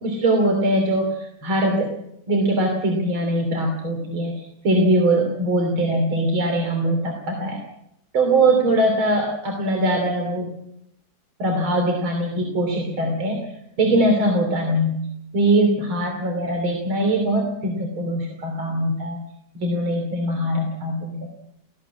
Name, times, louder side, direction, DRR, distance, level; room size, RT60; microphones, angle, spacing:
voice 1, 0.0-2.0 2.3-7.6 8.1-10.5 11.4-13.5 13.8-15.1 15.3-19.2 19.6-21.3, right 1 dB, 90° right, 2 dB, 4.0 m, -21 dB
18.0 x 16.5 x 9.8 m, 0.79 s
omnidirectional pair, 2.2 m